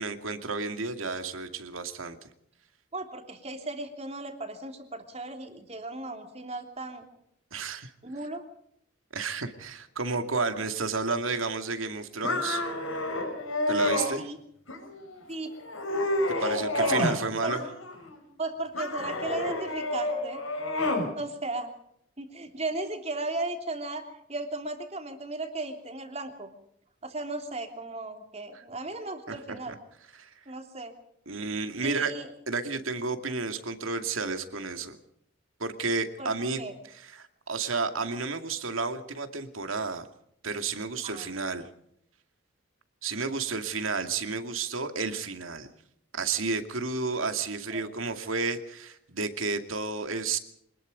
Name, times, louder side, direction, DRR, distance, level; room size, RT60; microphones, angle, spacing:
voice 1, 0.0-2.3 7.5-7.9 9.1-12.6 13.7-14.3 16.3-17.6 28.5-28.6 29.3-29.8 30.1-30.4 31.3-32.1 32.5-35.0 35.6-40.1 40.4-41.6 43.0-45.7 46.1-50.4, right 4 dB, 80° right, 8 dB, 2.4 m, -31 dB
voice 2, 2.9-7.0 8.0-8.4 14.2-14.4 15.3-15.5 16.4-17.5 18.4-20.4 21.1-21.7 22.2-26.5 27.0-29.7 30.5-30.9 31.8-32.3 36.2-36.7 41.0-41.3 47.7-47.9, right 2 dB, 30° right, 5 dB, 3.2 m, -36 dB
sound 1, 12.2-14.1 14.7-15.2 15.6-17.2 17.5-18.2 18.7-21.1, left 2 dB, 85° left, 6.3 m, -29 dB
26.0 x 20.0 x 5.2 m, 0.71 s
head